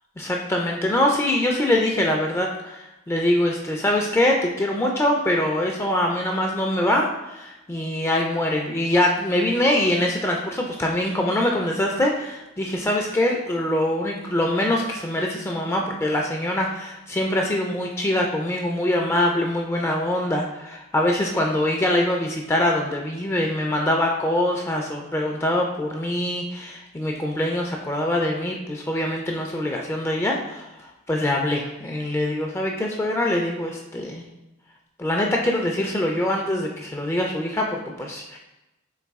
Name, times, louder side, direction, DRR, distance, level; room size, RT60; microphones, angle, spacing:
voice 1, 0.2-34.2 35.0-38.4, left 1 dB, 10° left, 0 dB, 0.3 m, -24 dB
4.0 x 2.6 x 3.5 m, 0.98 s
head